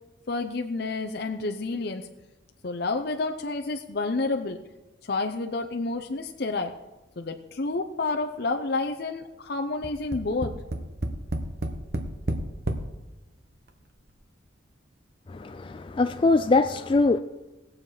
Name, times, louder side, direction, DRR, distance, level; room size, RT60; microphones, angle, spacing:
voice 1, 0.3-2.1 2.6-4.6 5.0-6.7 7.2-10.5, left 3 dB, 55° left, 0.7 m, -29 dB
Tap, 9.8-12.9 13.7-13.8 14.1-14.2, right 1 dB, 55° right, 1.1 m, -30 dB
voice 2, 15.3-17.2, left 3 dB, 25° left, 0.3 m, -22 dB
19.0 x 7.3 x 4.9 m
head